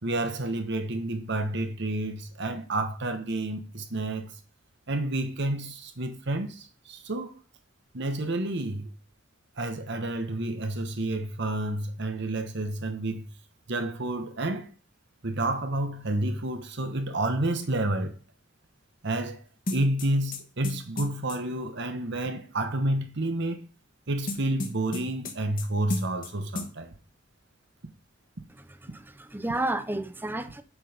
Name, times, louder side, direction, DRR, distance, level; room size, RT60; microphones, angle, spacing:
voice 1, 0.0-4.3 4.9-7.3 7.9-8.9 9.6-13.2 13.7-14.7 15.2-18.2 19.0-19.4 19.7-23.7 24.1-26.9, right 1 dB, 60° right, 1.2 m, -30 dB
sound 1, 19.7-21.4 24.3-25.6 25.9-26.3 26.5-26.7, left 2 dB, 45° left, 1.6 m, -33 dB
voice 2, 28.8-30.6, right 2 dB, 10° right, 0.6 m, -31 dB
7.6 x 6.2 x 5.1 m
head